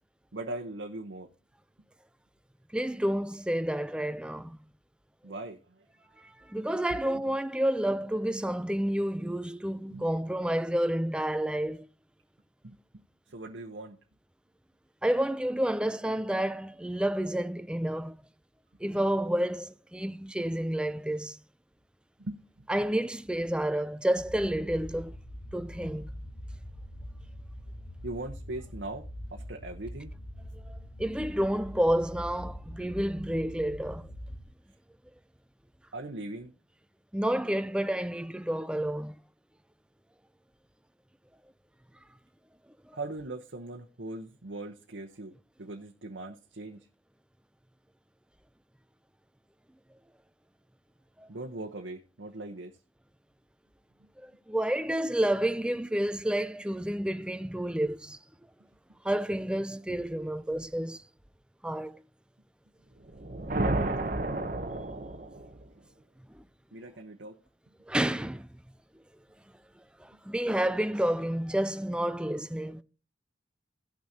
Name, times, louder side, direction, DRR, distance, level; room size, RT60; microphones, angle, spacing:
voice 1, 0.3-1.3 5.2-5.9 6.6-6.7 9.9-10.0 12.6-14.0 22.2-22.7 28.0-30.1 35.9-36.5 42.9-45.3 45.6-46.9 51.3-52.7 54.0-54.1 66.7-67.4, right 2 dB, 70° right, 0.9 m, -40 dB
voice 2, 2.7-4.6 6.2-11.9 15.0-18.2 18.8-21.4 22.7-25.2 25.5-26.1 30.7-34.1 37.1-39.2 42.9-43.0 51.2-51.3 54.2-58.2 59.0-61.0 61.6-62.0 66.3-66.4 67.9-68.5 70.0-72.8, right 1 dB, 5° right, 0.4 m, -30 dB
sound 1, 24.2-34.5, equal, 80° left, 1.7 m, -43 dB
sound 2, 63.0-65.7, right 2 dB, 45° right, 0.9 m, -31 dB
17.5 x 6.2 x 2.8 m
head